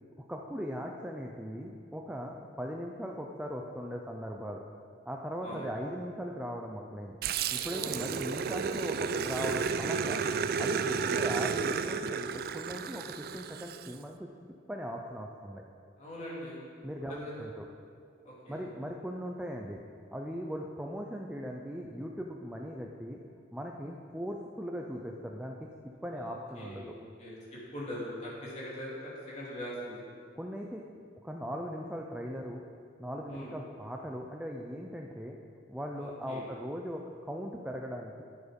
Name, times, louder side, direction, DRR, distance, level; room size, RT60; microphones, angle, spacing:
voice 1, 0.2-4.6 5.1-7.2 7.5-10.2 10.6-14.3 14.7-15.6 16.8-17.6 18.5-19.8 20.1-23.2 23.5-25.7 26.0-27.0 30.4-30.9 31.2-32.6 33.0-35.4 35.7-38.2, equal, 5° right, 0 dB, 0.6 m, -39 dB
Growling, 7.2-13.9, right 6 dB, 55° right, 0.4 m, -32 dB
voice 2, 16.0-16.6 17.1-17.3 18.2-18.6 26.1-27.4 27.7-30.0 33.3-33.5 36.0-36.4, equal, 40° left, -6 dB, 3.2 m, -42 dB
10.5 x 9.4 x 5.3 m, 2.3 s
head